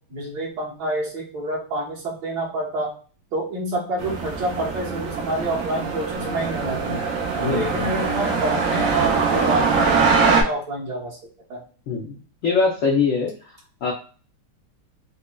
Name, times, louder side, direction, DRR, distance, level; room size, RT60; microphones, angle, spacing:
voice 1, 0.1-2.9 3.3-7.1 7.4-11.2 11.5-11.6, right 1 dB, 55° right, -3 dB, 1.5 m, -28 dB
sound 1, 4.0-10.4, right 5 dB, 80° right, 0.7 m, -23 dB
voice 2, 7.4-7.8 11.9-12.1 12.4-13.3 13.8-13.9, left 5 dB, 80° left, -1 dB, 0.7 m, -22 dB
5.0 x 2.1 x 2.2 m, 0.39 s
omnidirectional pair, 2.2 m